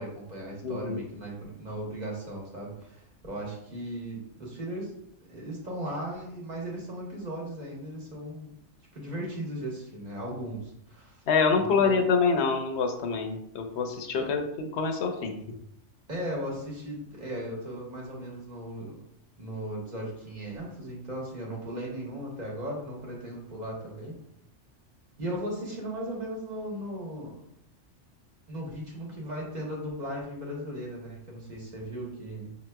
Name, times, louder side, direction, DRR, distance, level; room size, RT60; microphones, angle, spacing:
voice 1, 0.0-4.9 5.3-8.5 8.9-11.2 11.5-12.1 14.2-14.3 16.1-19.0 19.4-24.2 25.2-27.4 28.5-32.6, right 1 dB, 40° right, -3 dB, 1.1 m, -37 dB
voice 2, 0.6-1.0 11.3-14.4 14.7-15.3, left 5 dB, 70° left, 5 dB, 0.8 m, -26 dB
5.5 x 2.9 x 2.2 m, 0.75 s
omnidirectional pair, 1.3 m